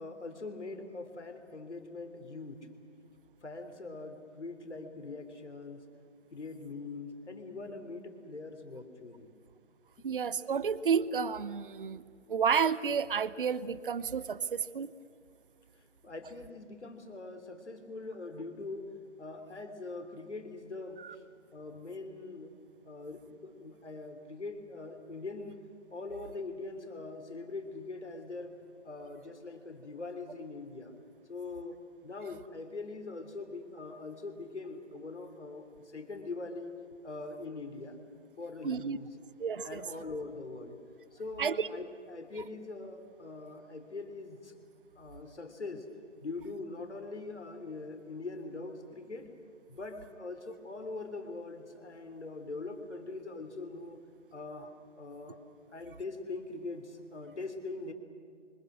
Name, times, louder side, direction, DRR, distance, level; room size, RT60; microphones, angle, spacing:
voice 1, 0.0-2.7 3.4-5.8 6.3-9.3 16.0-18.9 19.2-21.2 21.5-22.5 22.8-25.6 25.9-28.5 28.8-30.9 31.3-36.7 37.0-38.0 38.4-39.1 39.6-40.8 41.1-44.5 44.9-45.9 46.2-49.3 49.7-54.0 54.3-55.4 55.7-57.9, left 3 dB, 70° left, 6 dB, 3.5 m, -42 dB
voice 2, 10.0-12.0 12.3-14.9 21.0-21.1 38.6-39.0 39.4-39.8 41.4-41.7, right 6 dB, 45° right, 18 dB, 0.8 m, -31 dB
27.5 x 25.0 x 6.3 m, 2.3 s
figure-of-eight pair, 145°, 36 cm